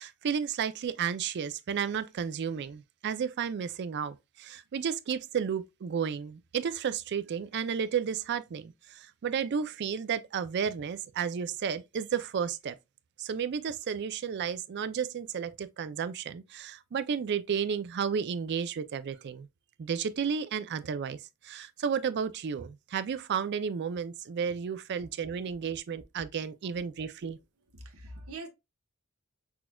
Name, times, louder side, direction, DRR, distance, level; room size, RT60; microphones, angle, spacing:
voice 1, 0.0-12.8 13.2-19.5 19.8-21.2 21.4-27.4, right 7 dB, 55° right, 0.4 m, -32 dB
voice 2, 27.3-28.5, right 2 dB, 80° right, 1.0 m, -46 dB
6.0 x 2.4 x 2.2 m
head